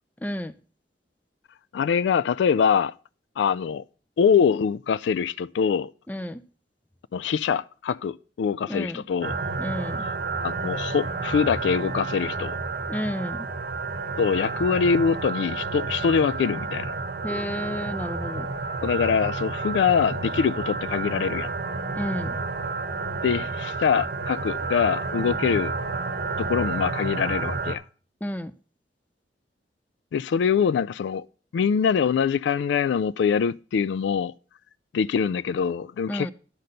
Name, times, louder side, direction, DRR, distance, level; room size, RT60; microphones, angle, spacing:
voice 1, 0.2-0.5 6.1-6.4 8.7-9.0 9.6-10.0 12.9-13.5 17.2-18.5 22.0-22.4 28.2-28.5 36.1-36.3, left 1 dB, 10° left, 0.4 m, -31 dB
voice 2, 1.7-2.9 3.4-3.8 4.2-5.9 7.1-9.4 10.4-12.6 14.2-16.9 18.8-21.5 23.2-25.7 26.4-27.8 30.1-31.2 31.5-34.3 34.9-36.3, left 6 dB, 90° left, 0.3 m, -24 dB
sound 1, 9.2-27.8, right 4 dB, 60° right, 0.9 m, -30 dB
10.5 x 4.2 x 6.4 m
head